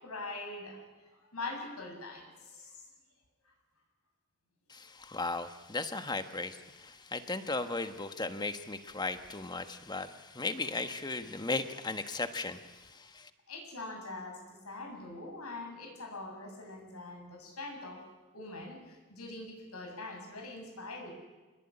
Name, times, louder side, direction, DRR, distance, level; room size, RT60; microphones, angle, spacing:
voice 1, 0.0-0.8 1.1-2.8 13.5-18.0 18.3-21.1, left 2 dB, 85° left, 2 dB, 7.4 m, -43 dB
voice 2, 4.7-13.3, left 3 dB, 20° left, 9 dB, 1.3 m, -36 dB
26.5 x 20.5 x 9.8 m, 1.2 s
head